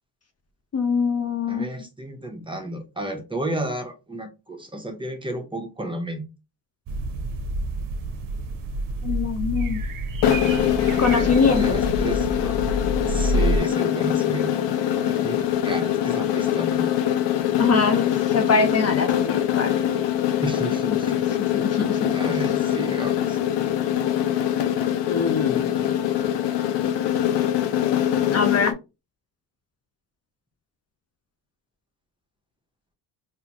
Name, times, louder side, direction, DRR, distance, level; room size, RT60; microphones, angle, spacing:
voice 1, 0.7-1.7 9.0-9.8 11.0-11.8 17.6-19.9 20.9-21.0 21.3-22.1 25.1-26.0 28.3-28.8, left 5 dB, 35° left, 0.6 m, -23 dB
voice 2, 1.5-6.2 11.6-12.6 13.1-14.6 15.0-16.9 20.4-21.2 22.1-23.4, right 1 dB, 10° right, 0.8 m, -32 dB
sound 1, 6.9-13.6, right 1 dB, 50° right, 0.8 m, -28 dB
sound 2, 10.2-28.7, left 11 dB, 80° left, 0.7 m, -23 dB
3.9 x 2.7 x 2.9 m
cardioid pair, 85°, 42 cm